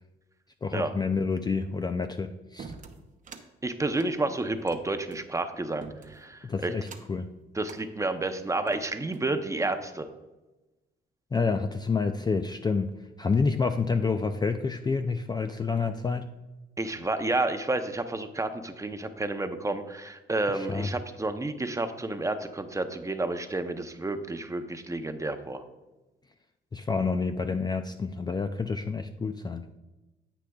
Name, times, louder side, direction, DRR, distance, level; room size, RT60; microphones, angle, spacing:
voice 1, 0.6-2.7 6.4-7.3 11.3-12.9 13.2-16.3 20.5-20.9 26.7-29.6, left 4 dB, 20° left, 7 dB, 0.4 m, -28 dB
sound 1, 2.6-3.5 3.9-5.3 5.8-6.3 6.8-7.2 7.6-7.8 8.4-9.3, right 5 dB, 40° right, 0.8 m, -46 dB
voice 2, 3.6-6.7 7.5-10.1 16.8-25.6, right 2 dB, 15° right, 8 dB, 0.7 m, -30 dB
9.8 x 8.2 x 2.3 m, 1.1 s
cardioid pair, 90°, 20 cm